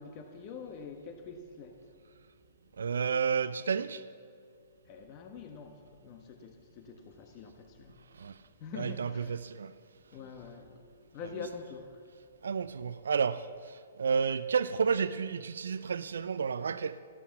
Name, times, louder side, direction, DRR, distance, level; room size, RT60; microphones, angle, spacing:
voice 1, 0.0-1.8 4.9-7.9 8.6-9.4 10.1-10.8 11.1-12.0, left 5 dB, 35° left, 1.4 m, -45 dB
voice 2, 2.8-4.0 8.2-8.4 8.7-9.7 12.4-17.0, right 6 dB, 70° right, 0.5 m, -31 dB
14.0 x 12.5 x 7.3 m
figure-of-eight pair, 120°, 0 cm